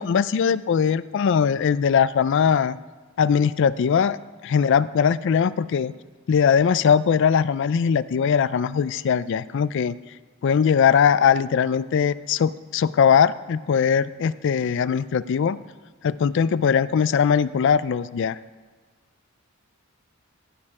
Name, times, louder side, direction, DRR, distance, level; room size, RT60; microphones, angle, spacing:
voice 1, 0.0-2.8 3.2-4.2 4.4-5.9 6.3-10.0 10.4-15.6 16.0-18.4, left 7 dB, 60° left, 17 dB, 0.3 m, -20 dB
15.5 x 6.6 x 4.8 m, 1.4 s
head